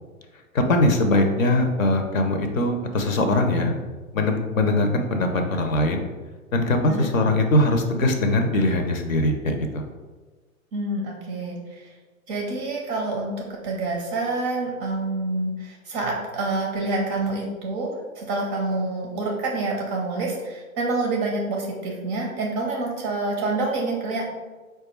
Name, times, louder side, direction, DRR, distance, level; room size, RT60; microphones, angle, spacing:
voice 1, 0.5-3.7 4.1-6.1 6.5-9.8, left 1 dB, 65° left, 5 dB, 0.8 m, -21 dB
voice 2, 10.7-11.6 12.3-24.2, right 2 dB, 20° right, 0 dB, 0.5 m, -27 dB
4.7 x 2.3 x 4.4 m, 1.3 s
figure-of-eight pair, 110°, 43 cm